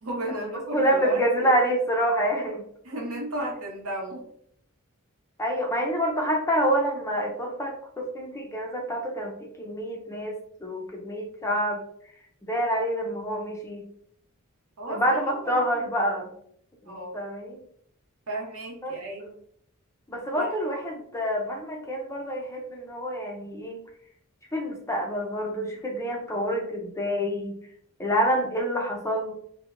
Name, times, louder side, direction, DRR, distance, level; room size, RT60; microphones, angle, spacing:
voice 1, 0.0-1.5 2.8-4.3 14.8-15.7 16.9-17.2 18.3-19.3 20.3-20.5, right 1 dB, 70° right, -1 dB, 0.8 m, -34 dB
voice 2, 0.7-2.6 5.4-11.8 12.5-13.8 14.9-16.3 16.9-17.6 18.8-19.0 20.1-23.8 24.5-27.6 28.0-29.3, equal, 15° left, 1 dB, 0.4 m, -27 dB
2.8 x 2.1 x 2.4 m, 0.66 s
head